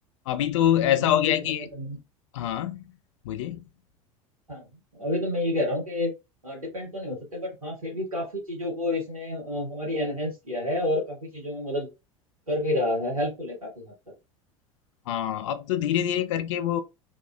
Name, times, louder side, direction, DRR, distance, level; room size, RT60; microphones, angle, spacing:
voice 1, 0.3-1.7 2.3-2.8 3.2-3.6 15.1-16.8, left 11 dB, 60° left, 0.4 m, -25 dB
voice 2, 0.9-2.0 4.5-4.7 4.9-6.1 6.4-11.9 12.5-13.9, left 1 dB, 90° right, 1.4 m, -29 dB
2.8 x 2.3 x 2.3 m
figure-of-eight pair, 75°, 18 cm